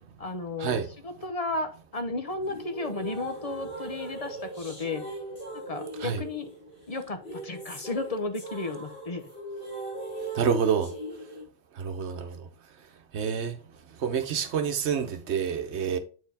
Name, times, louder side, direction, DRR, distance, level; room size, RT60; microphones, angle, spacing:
voice 1, 0.2-5.1 5.5-6.5 6.9-9.3, left 2 dB, 40° left, 0.8 m, -34 dB
sound 1, 2.4-11.4, right 1 dB, 70° left, 4.1 m, -40 dB
voice 2, 10.4-10.9 11.8-12.3 13.1-13.5 14.0-16.0, right 7 dB, 85° right, 1.1 m, -27 dB
8.4 x 4.5 x 3.4 m
omnidirectional pair, 1.1 m